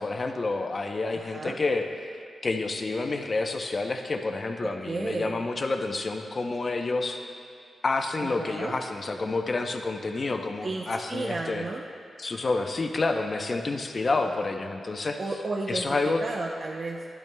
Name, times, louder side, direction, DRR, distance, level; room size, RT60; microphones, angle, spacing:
voice 1, 0.0-1.9 2.4-7.2 7.8-11.6 12.2-15.2 15.7-16.2, left 3 dB, 35° left, 4 dB, 0.6 m, -29 dB
voice 2, 1.1-1.6 4.6-5.4 8.2-8.8 10.6-11.8 15.2-17.1, right 2 dB, 40° right, -1 dB, 0.6 m, -33 dB
12.0 x 12.0 x 2.2 m, 2.5 s
wide cardioid pair, 130°, 0 cm